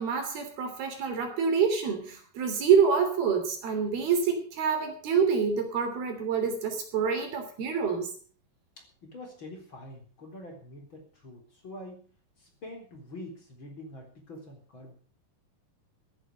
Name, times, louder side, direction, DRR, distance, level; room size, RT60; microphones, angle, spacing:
voice 1, 0.0-8.1, right 6 dB, 75° right, 6 dB, 5.0 m, -27 dB
voice 2, 9.0-12.1 12.4-14.9, left 1 dB, 30° left, 2 dB, 4.5 m, -45 dB
14.5 x 11.0 x 6.6 m, 0.42 s
omnidirectional pair, 4.5 m